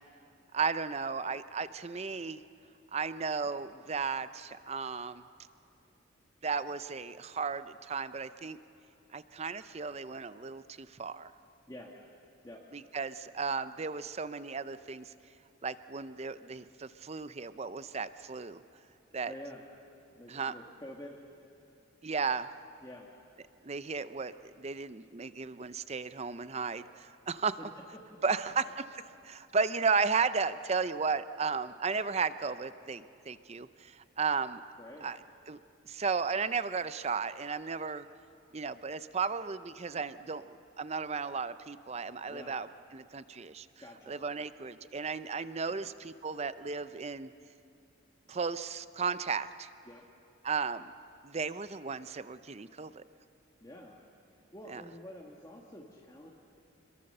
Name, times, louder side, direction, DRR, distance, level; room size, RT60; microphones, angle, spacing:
voice 1, 0.5-2.4 2.9-5.2 6.4-8.6 9.1-11.3 12.7-15.1 15.6-18.6 19.1-19.3 20.3-20.5 22.0-22.5 23.6-27.6 28.2-34.6 35.0-35.2 35.5-35.6 35.8-38.0 38.5-43.7 44.1-47.3 48.3-49.7 50.4-50.9 51.2-53.0 54.7-54.8, right 5 dB, 30° right, 13 dB, 0.5 m, -34 dB
voice 2, 19.3-19.6 20.1-21.1 22.8-23.1 34.8-35.1 42.3-42.5 43.8-44.2 45.7-45.9 49.9-50.0 53.6-54.0 54.5-56.3, left 1 dB, 20° left, -2 dB, 1.5 m, -48 dB
27.0 x 22.0 x 6.7 m, 2.6 s
head